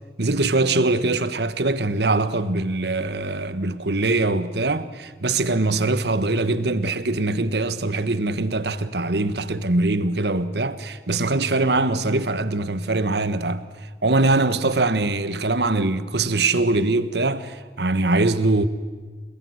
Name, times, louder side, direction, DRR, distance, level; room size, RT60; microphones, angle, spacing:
voice 1, 0.2-13.6 14.0-18.7, right 2 dB, 75° right, 1.4 m, -22 dB
28.5 x 19.5 x 9.7 m
head